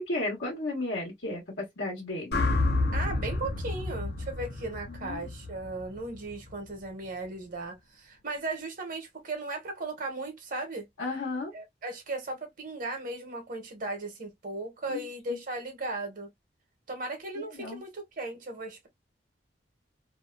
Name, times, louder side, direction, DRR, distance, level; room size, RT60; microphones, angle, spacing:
voice 1, 0.1-2.4 4.9-5.2 11.0-11.5 14.9-15.0 15.3-15.4 17.4-17.8, left 2 dB, 80° left, 1.1 m, -34 dB
sound 1, 2.3-6.5, left 2 dB, 60° left, 0.6 m, -30 dB
voice 2, 2.9-10.9 11.5-16.3 16.9-18.9, right 2 dB, 50° right, 1.0 m, -37 dB
2.7 x 2.2 x 2.3 m
head